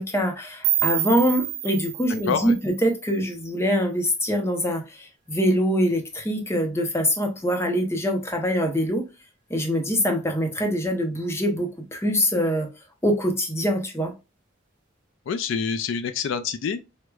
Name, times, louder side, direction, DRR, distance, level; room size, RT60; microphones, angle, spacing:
voice 1, 0.0-9.0 9.5-12.7 13.0-14.1, equal, 10° left, 0.6 m, -24 dB
sound 1, 0.6-3.6, right 12 dB, 40° right, 0.4 m, -28 dB
voice 2, 2.3-2.6 15.3-16.8, left 6 dB, 65° left, 0.3 m, -26 dB
4.6 x 2.1 x 2.2 m
head